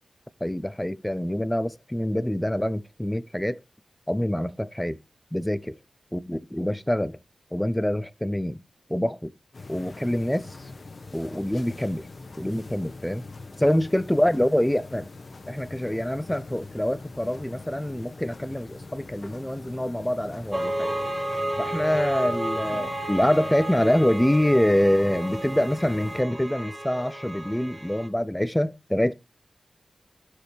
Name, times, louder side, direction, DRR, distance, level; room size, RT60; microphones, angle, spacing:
voice 1, 0.4-3.6 4.1-5.0 5.3-5.8 6.1-7.2 7.5-8.6 8.9-9.3 9.7-10.6 11.1-12.1 12.4-13.2 13.6-15.1 15.5-20.9 21.6-29.1, left 1 dB, 10° left, 0.5 m, -25 dB
sound 1, 9.5-26.2, left 3 dB, 50° left, 1.0 m, -43 dB
sound 2, 20.5-28.1, right 1 dB, 20° right, 1.3 m, -32 dB
10.0 x 6.2 x 3.3 m
wide cardioid pair, 80°, 0 cm